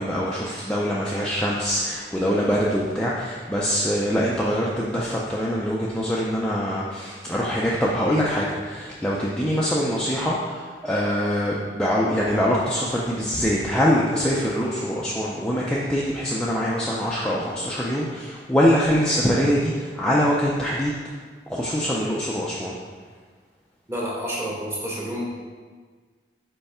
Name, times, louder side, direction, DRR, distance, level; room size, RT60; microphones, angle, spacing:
voice 1, 0.0-21.0 21.5-22.7, equal, 5° left, -6 dB, 0.5 m, -24 dB
voice 2, 23.9-25.3, equal, 15° right, -5 dB, 1.3 m, -29 dB
5.6 x 4.6 x 4.3 m, 1.5 s
head